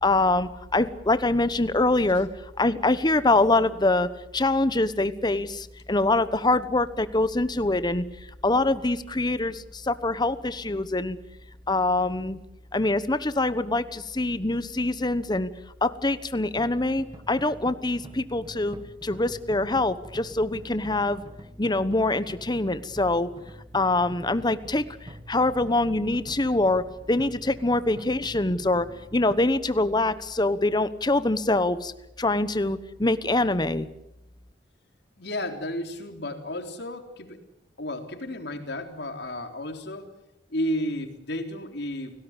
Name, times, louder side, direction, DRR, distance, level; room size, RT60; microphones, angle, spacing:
voice 1, 0.0-2.3 2.6-8.0 8.4-11.2 11.7-12.4 12.7-15.5 15.8-18.8 19.0-21.2 21.6-23.3 23.7-28.9 29.1-31.9 32.2-33.9, left 2 dB, 25° left, 14 dB, 1.1 m, -24 dB
sound 1, 16.6-29.4, right 1 dB, 25° right, 1.6 m, -46 dB
voice 2, 35.2-37.4 37.8-40.1 40.5-42.1, left 1 dB, 65° left, 5 dB, 3.8 m, -32 dB
29.0 x 18.5 x 8.2 m, 0.90 s
head